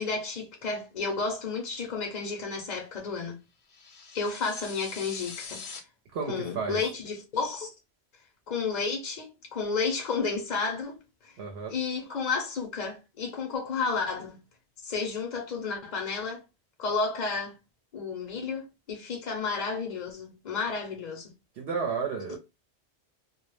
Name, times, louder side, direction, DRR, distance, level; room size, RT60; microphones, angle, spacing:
voice 1, 0.0-3.4 4.1-5.6 6.3-7.7 8.5-10.9 11.7-14.4 14.8-16.4 16.8-17.5 17.9-21.3, left 4 dB, 50° left, 0.6 m, -31 dB
sound 1, 3.7-5.8, left 5 dB, 80° left, 0.9 m, -43 dB
voice 2, 6.1-6.8 11.4-11.7 21.6-22.4, right 5 dB, 70° right, 0.8 m, -32 dB
2.2 x 2.0 x 3.0 m
omnidirectional pair, 1.1 m